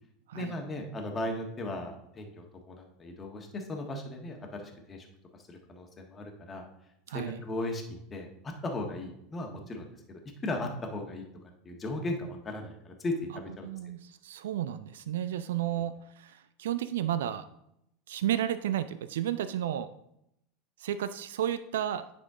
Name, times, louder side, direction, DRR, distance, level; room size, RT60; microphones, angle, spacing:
voice 1, 0.3-5.1 5.5-6.7 7.1-11.2 11.6-13.7, left 1 dB, 25° left, 2 dB, 1.5 m, -37 dB
voice 2, 7.1-7.4 13.6-17.5 18.1-19.9 20.8-22.2, right 11 dB, 70° right, 13 dB, 0.3 m, -32 dB
9.9 x 4.3 x 3.6 m, 0.79 s
hypercardioid pair, 80°, 0 cm